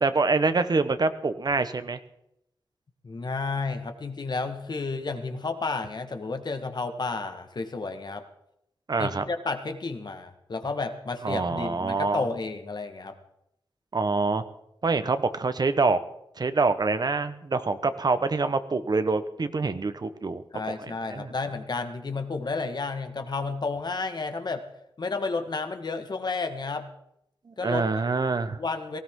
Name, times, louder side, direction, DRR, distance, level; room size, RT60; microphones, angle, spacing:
voice 1, 0.0-2.0 8.9-9.2 11.2-12.2 13.9-14.4 14.8-16.0 16.4-20.4 21.0-21.3 27.5-28.6, right 3 dB, 50° right, 11 dB, 1.1 m, -25 dB
voice 2, 3.0-8.2 9.0-13.2 20.5-24.6 25.0-26.9 27.6-27.9 28.6-29.0, left 3 dB, 55° left, 7 dB, 1.6 m, -31 dB
18.5 x 16.5 x 3.8 m, 0.79 s
wide cardioid pair, 115°, 9 cm